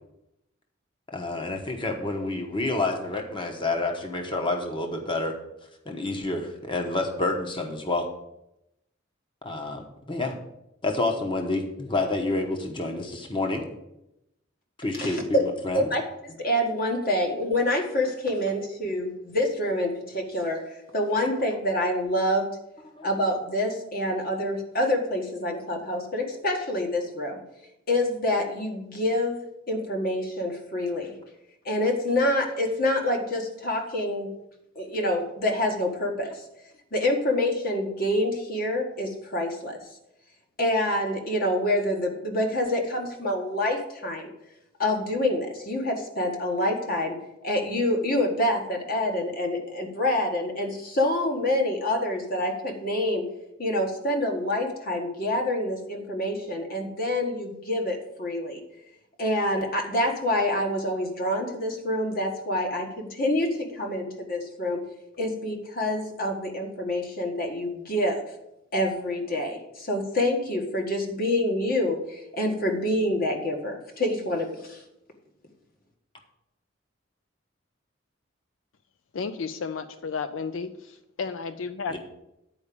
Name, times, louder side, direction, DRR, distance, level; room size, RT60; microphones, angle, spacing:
voice 1, 1.1-5.3 5.8-8.1 9.4-10.3 10.8-13.6 14.8-15.9 23.0-23.1 81.9-82.0, left 2 dB, 25° left, 3 dB, 1.1 m, -28 dB
voice 2, 15.0-15.4 15.7-16.0 16.3-20.6 20.9-22.5 23.0-27.4 27.9-29.4 29.7-31.1 31.6-34.3 34.7-36.3 36.9-39.8 40.6-44.3 44.8-47.2 47.4-53.2 53.6-58.6 59.2-64.8 65.2-68.2 68.7-74.8, left 1 dB, 50° left, 2 dB, 1.7 m, -27 dB
voice 3, 79.1-82.0, left 5 dB, 85° left, 10 dB, 0.5 m, -33 dB
9.6 x 4.9 x 6.9 m, 0.86 s
head